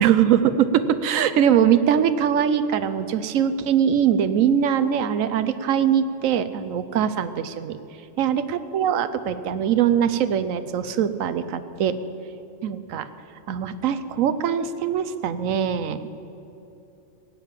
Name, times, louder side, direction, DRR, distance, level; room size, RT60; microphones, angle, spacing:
voice 1, 0.0-7.8 8.2-8.4 8.7-11.9 12.6-13.1 13.5-16.0, right 9 dB, 80° right, 12 dB, 1.1 m, -22 dB
17.0 x 8.7 x 7.4 m, 3.0 s
omnidirectional pair, 1.4 m